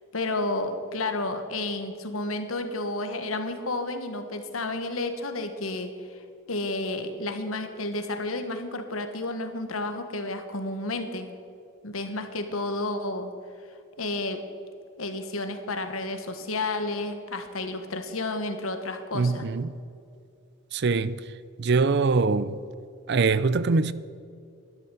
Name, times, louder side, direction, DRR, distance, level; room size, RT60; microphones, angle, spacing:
voice 1, 0.1-6.2 6.5-11.3 11.8-13.3 14.0-14.4 15.0-19.5, left 2 dB, 85° left, 1.4 m, -31 dB
voice 2, 19.1-19.7 20.7-21.2 21.6-22.6 23.1-23.9, right 4 dB, 55° right, 0.5 m, -23 dB
12.0 x 11.5 x 7.0 m
head